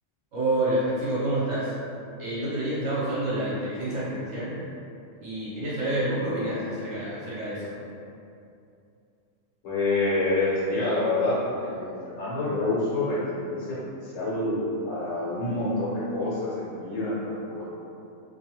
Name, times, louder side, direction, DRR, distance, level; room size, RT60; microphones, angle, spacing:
voice 1, 0.3-1.7 2.2-4.6 5.2-7.7, right 1 dB, 70° right, -10 dB, 1.1 m, -28 dB
voice 2, 9.6-17.6, left 2 dB, 90° left, -8 dB, 1.2 m, -27 dB
2.7 x 2.3 x 2.9 m, 2.6 s
omnidirectional pair, 1.3 m